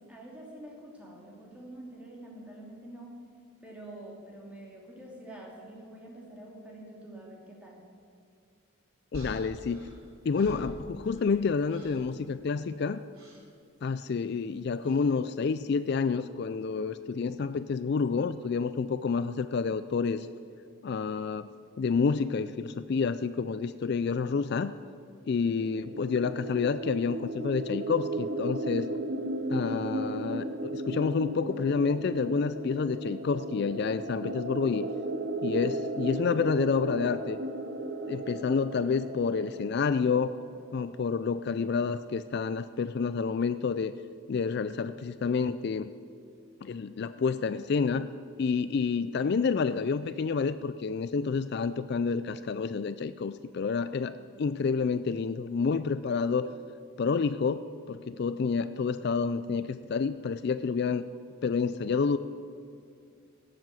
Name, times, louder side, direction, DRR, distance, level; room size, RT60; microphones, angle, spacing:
voice 1, 0.0-3.1 3.6-7.8 54.3-54.8, right 1 dB, 5° right, -3 dB, 2.6 m, -47 dB
voice 2, 9.1-9.9 10.3-13.0 13.8-20.3 20.8-21.5 21.8-24.7 25.3-28.9 29.5-34.9 35.4-37.4 38.1-40.3 40.7-43.9 44.3-45.9 46.6-48.1 48.4-56.5 57.0-61.0 61.4-62.2, left 5 dB, 50° left, 13 dB, 0.3 m, -29 dB
sound 1, 9.1-11.4 11.7-12.1 13.1-13.5 14.8-15.1, right 1 dB, 80° right, 3.9 m, -46 dB
sound 2, 25.5-41.2, right 1 dB, 55° right, 1.0 m, -35 dB
17.5 x 7.6 x 7.7 m, 2.4 s
head